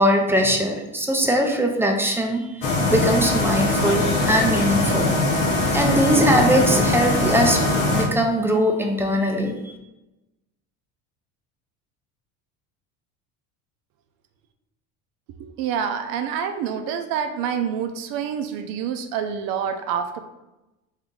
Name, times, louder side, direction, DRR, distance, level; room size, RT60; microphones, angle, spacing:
voice 1, 0.0-5.1 5.7-7.6 7.9-9.7, equal, 5° right, 2 dB, 0.5 m, -21 dB
sound 1, 2.6-8.1, left 2 dB, 50° left, 0.9 m, -21 dB
voice 2, 15.4-20.2, right 7 dB, 65° right, 7 dB, 0.5 m, -27 dB
3.4 x 2.7 x 3.7 m, 0.97 s
supercardioid pair, 100°, 38 cm